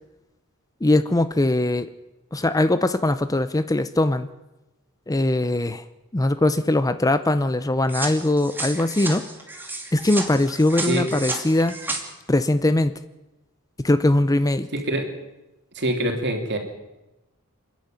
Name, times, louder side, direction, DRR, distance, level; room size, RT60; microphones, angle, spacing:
voice 1, 0.8-1.9 2.3-4.3 5.1-5.8 6.1-9.2 9.9-11.8 12.3-12.9 13.8-14.7, left 1 dB, 15° left, 12 dB, 0.6 m, -21 dB
sound 1, 7.9-12.0, right 2 dB, 10° right, 2.6 m, -32 dB
voice 2, 14.7-15.0 15.7-16.6, right 1 dB, 55° right, 4 dB, 3.3 m, -24 dB
28.0 x 10.5 x 9.1 m, 1.0 s
head